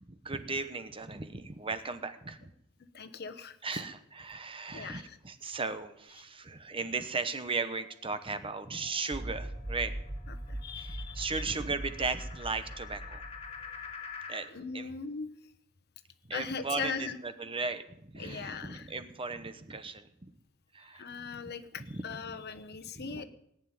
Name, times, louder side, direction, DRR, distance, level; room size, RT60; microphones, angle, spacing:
voice 1, 0.1-2.5 3.6-9.9 10.8-13.2 14.3-14.5 14.7-14.9 16.3-20.1 20.7-21.5 21.9-22.4 23.0-23.3, right 4 dB, 25° right, 10 dB, 0.9 m, -37 dB
voice 2, 2.9-3.6 4.7-5.2 10.5-11.4 14.5-15.3 16.3-17.2 18.2-18.9 21.0-23.3, left 5 dB, 50° left, 8 dB, 1.1 m, -39 dB
sound 1, 7.8-14.5, left 6 dB, 30° left, 2.0 m, -48 dB
sound 2, 9.1-13.9, right 1 dB, 10° right, 0.5 m, -41 dB
18.5 x 7.1 x 9.7 m, 0.79 s
head